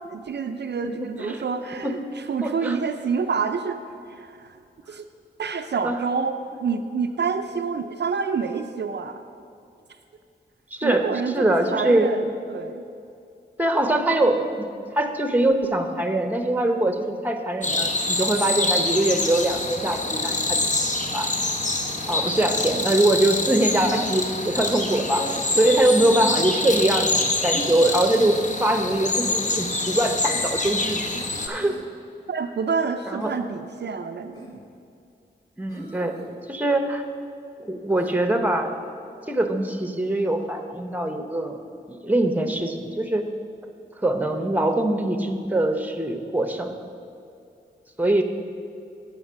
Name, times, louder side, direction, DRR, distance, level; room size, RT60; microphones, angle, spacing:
voice 1, 0.1-3.8 4.1-4.6 4.9-5.1 5.4-9.2 10.8-12.9 32.3-34.6, right 5 dB, 65° right, 7 dB, 0.5 m, -28 dB
voice 2, 2.4-2.8 5.8-6.0 10.7-12.1 13.6-14.7 14.9-17.9 18.2-21.3 22.1-25.3 25.6-31.0 31.5-31.8 33.1-33.4 35.6-36.2 36.5-37.0 37.6-38.7 39.3-41.6 41.9-43.2 44.0-46.7 48.0-48.2, right 1 dB, 10° right, 6 dB, 0.9 m, -23 dB
sound 1, 17.6-31.5, left 2 dB, 40° left, 0.9 m, -26 dB
Human voice, 25.1-25.7 27.4-27.7 29.2-29.6 31.3-31.8 33.2-33.4 34.3-34.6 35.7-36.3 37.9-38.2, equal, 20° left, 2.3 m, -39 dB
Piano, 30.2-32.5, left 3 dB, 75° left, 1.3 m, -41 dB
8.0 x 5.3 x 7.5 m, 2.5 s
cardioid pair, 50°, 19 cm